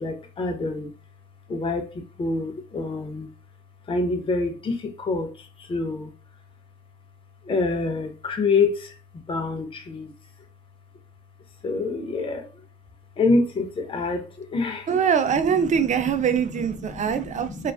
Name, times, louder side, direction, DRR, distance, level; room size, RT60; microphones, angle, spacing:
voice 1, 0.0-0.9 1.5-1.8 2.2-3.3 3.9-5.3 5.7-6.1 7.5-8.9 9.3-10.1 11.6-12.5 13.2-15.0 16.1-16.2 16.9-17.7, left 3 dB, 25° left, 0.5 m, -26 dB
voice 2, 14.9-17.7, right 7 dB, 40° right, 0.4 m, -23 dB
2.3 x 2.3 x 2.3 m
cardioid pair, 90°, 20 cm